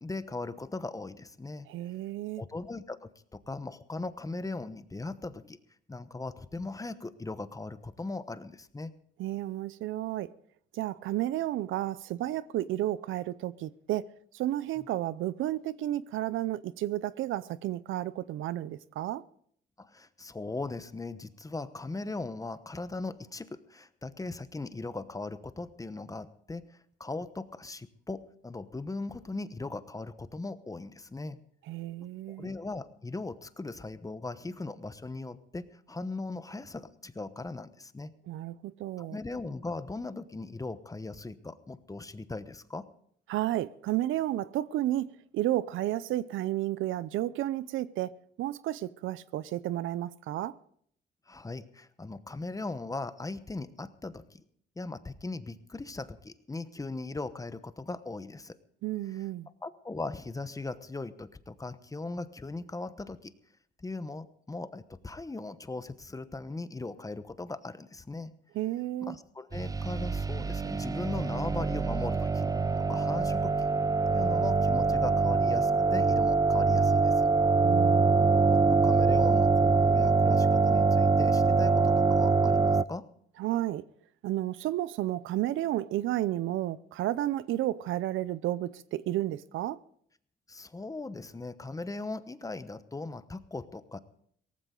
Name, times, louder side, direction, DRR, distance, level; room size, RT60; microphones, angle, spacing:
voice 1, 0.0-1.7 2.4-5.6 5.9-8.9 14.8-14.9 19.8-31.4 32.4-38.1 39.0-42.9 51.3-54.4 54.8-58.6 59.6-63.3 63.8-68.3 69.0-72.4 72.8-73.7 74.1-77.3 78.5-83.1 90.5-94.0, left 3 dB, 15° left, 1.0 m, -39 dB
voice 2, 1.7-2.4 9.2-10.3 10.7-19.2 31.7-32.5 38.3-39.2 43.3-48.1 48.4-50.6 58.8-59.5 68.5-69.1 77.6-78.5 83.4-83.8 84.2-89.8, right 14 dB, 80° right, 0.6 m, -32 dB
sound 1, 69.5-82.8, right 4 dB, 20° right, 0.5 m, -24 dB
17.5 x 15.0 x 3.8 m
cardioid pair, 90°, 20 cm